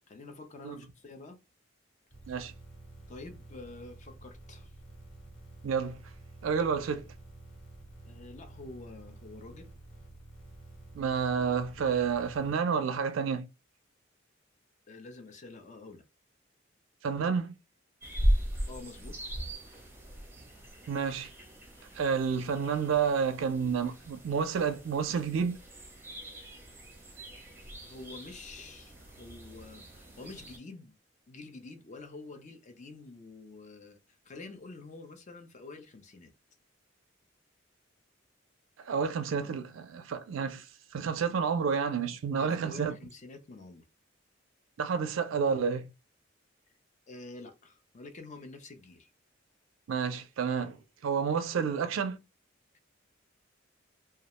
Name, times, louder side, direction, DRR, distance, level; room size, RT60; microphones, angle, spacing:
voice 1, 0.1-1.4 3.1-4.7 8.0-9.7 14.9-16.0 18.2-18.3 18.7-19.4 27.8-30.9 31.3-34.0 34.3-36.3 42.3-43.8 47.1-49.1, left 3 dB, 40° left, 0.5 m, -47 dB
sound 1, 2.1-12.5, right 2 dB, 80° left, 1.3 m, -50 dB
voice 2, 5.6-6.0 6.4-7.0 10.9-13.5 17.0-17.5 20.9-21.3 22.0-25.6 38.8-40.7 40.9-43.0 44.8-45.9 49.9-50.8 51.0-52.2, right 6 dB, 80° right, 0.4 m, -30 dB
sound 2, 18.0-30.6, equal, 10° right, 0.6 m, -37 dB
2.3 x 2.1 x 2.9 m
head